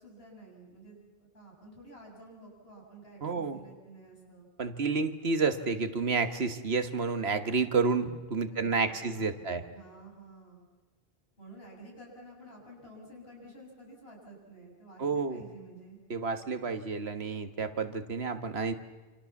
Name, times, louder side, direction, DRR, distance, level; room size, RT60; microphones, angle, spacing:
voice 1, 0.0-4.5 8.5-10.7 11.4-16.0, right 2 dB, 80° left, -1 dB, 7.5 m, -51 dB
voice 2, 3.2-3.6 4.6-9.6 15.0-15.4 16.1-18.7, right 4 dB, 85° right, 9 dB, 1.8 m, -30 dB
28.5 x 26.0 x 7.2 m, 1.3 s
omnidirectional pair, 1.0 m